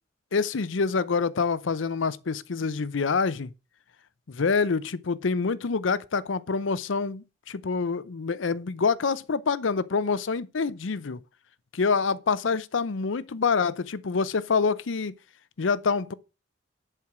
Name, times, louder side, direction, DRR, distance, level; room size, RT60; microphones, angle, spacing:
voice 1, 0.3-3.5 4.3-11.2 11.7-15.1 15.6-16.1, left 5 dB, 80° left, 0.6 m, -26 dB
11.0 x 4.6 x 5.9 m
head